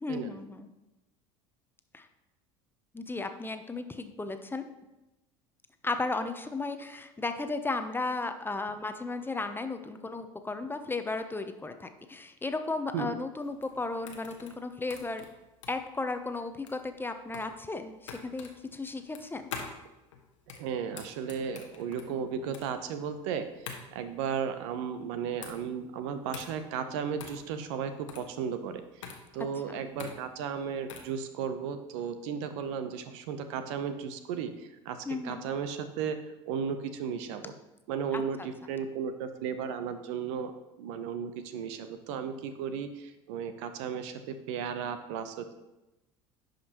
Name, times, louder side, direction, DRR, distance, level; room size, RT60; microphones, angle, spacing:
voice 1, 0.0-0.7 1.9-2.1 2.9-4.6 5.8-15.3 15.7-19.5 29.7-29.8 35.1-35.5 38.1-38.2, left 3 dB, 15° left, 8 dB, 0.7 m, -35 dB
sound 1, 13.4-31.2, left 6 dB, 85° left, 1.0 m, -46 dB
voice 2, 20.5-29.1 29.3-36.2 36.5-37.5 37.9-40.5 40.8-45.5, right 7 dB, 70° right, 9 dB, 0.7 m, -35 dB
10.5 x 5.1 x 2.9 m, 0.99 s
hypercardioid pair, 75°, 16 cm